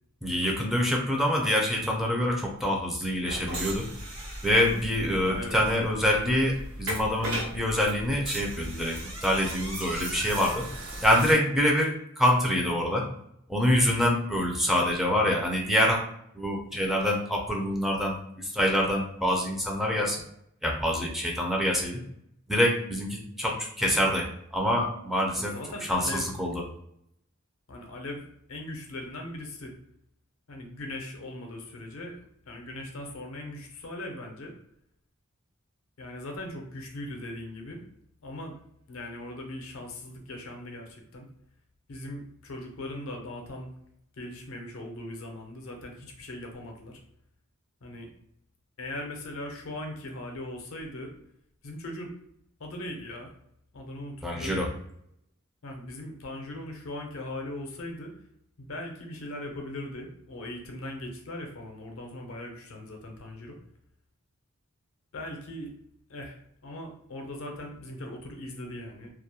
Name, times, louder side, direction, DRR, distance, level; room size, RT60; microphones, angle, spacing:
voice 1, 0.2-3.9 4.4-10.6 11.0-13.1 13.5-16.0 16.3-20.2 20.6-22.0 22.5-24.3 24.5-25.5 25.9-26.6 54.2-54.7, equal, ahead, -1 dB, 0.4 m, -26 dB
sound 1, 3.2-11.3, right 1 dB, 75° right, 1.0 m, -37 dB
voice 2, 5.2-5.6 25.3-26.2 27.7-28.2 28.5-29.7 30.5-34.5 36.0-37.8 38.2-38.5 38.9-41.3 41.9-43.7 44.2-47.0 47.8-48.1 48.8-51.1 51.6-52.1 52.6-53.3 53.7-54.6 55.6-58.1 58.6-63.6 65.1-65.7 66.1-69.1, left 1 dB, 75° left, 3 dB, 0.6 m, -39 dB
2.3 x 2.0 x 2.7 m, 0.73 s
head